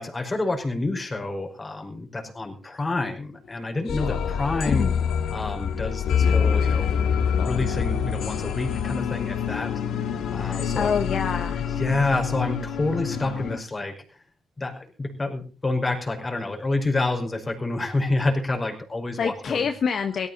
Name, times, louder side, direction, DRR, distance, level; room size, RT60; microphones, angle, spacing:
voice 1, 0.0-4.9 5.3-6.9 7.4-11.0 11.8-14.2 14.6-19.7, left 2 dB, 25° left, 3 dB, 5.4 m, -28 dB
sound 1, 3.9-13.6, left 7 dB, 75° left, 2.0 m, -26 dB
voice 2, 10.3-11.7 19.2-20.3, left 6 dB, 55° left, 7 dB, 1.5 m, -27 dB
18.0 x 14.5 x 4.2 m, 0.37 s
cardioid pair, 90°, 0 cm